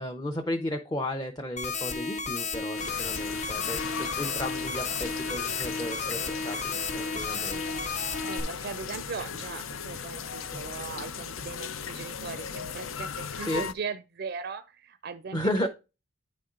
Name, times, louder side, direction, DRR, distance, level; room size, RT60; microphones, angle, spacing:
voice 1, 0.0-6.2 6.4-7.6 10.5-10.6 13.4-13.7 15.3-15.7, left 1 dB, 20° left, 0.6 m, -33 dB
sound 1, 1.6-8.4, left 4 dB, 35° left, 1.0 m, -33 dB
sound 2, 2.8-13.7, left 6 dB, 80° left, 0.6 m, -37 dB
voice 2, 8.1-15.7, right 5 dB, 50° right, 0.4 m, -39 dB
9.5 x 4.2 x 3.7 m
head